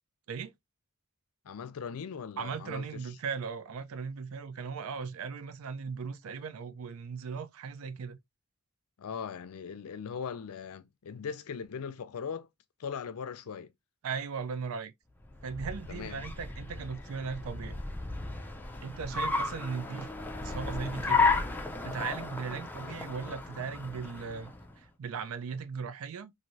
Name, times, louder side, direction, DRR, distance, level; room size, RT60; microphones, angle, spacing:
voice 1, 1.4-3.1 9.0-12.5 12.8-13.7 15.9-16.2 22.8-22.9, left 6 dB, 85° left, 0.4 m, -40 dB
voice 2, 2.4-8.2 14.0-14.9 15.4-17.8 18.8-20.1 20.4-21.3 21.8-26.3, right 5 dB, 70° right, 0.4 m, -38 dB
Car, 15.2-24.7, left 4 dB, 10° left, 0.4 m, -33 dB
3.0 x 2.6 x 2.6 m
head